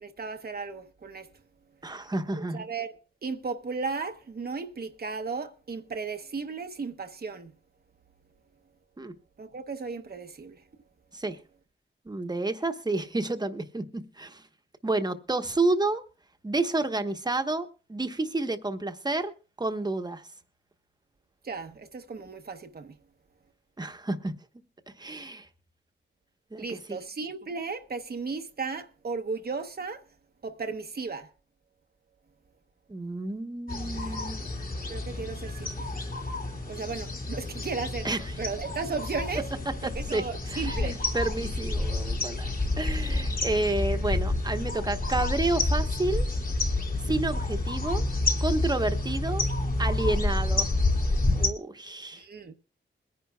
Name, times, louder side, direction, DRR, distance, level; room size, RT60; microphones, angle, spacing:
voice 1, 0.0-1.3 2.5-2.9 3.2-7.5 9.4-10.6 21.4-23.0 26.6-30.0 30.4-31.3 34.0-34.2 34.9-35.9 36.7-38.1 38.4-39.5 40.0-41.0 52.1-52.5, right 4 dB, 50° right, 0.9 m, -35 dB
voice 2, 1.8-2.6 9.0-9.1 11.1-11.4 12.1-14.4 14.8-16.0 16.4-19.3 19.6-20.2 23.8-24.3 25.0-25.5 26.5-27.0 32.9-34.4 38.0-38.4 40.1-40.2 40.5-42.5 42.8-46.3 47.0-48.0 48.4-49.4 49.8-50.7 51.3-52.2, right 2 dB, 20° right, 1.0 m, -30 dB
sound 1, 33.7-51.5, left 2 dB, 45° left, 2.3 m, -29 dB
22.5 x 10.5 x 2.3 m
wide cardioid pair, 110°, 20 cm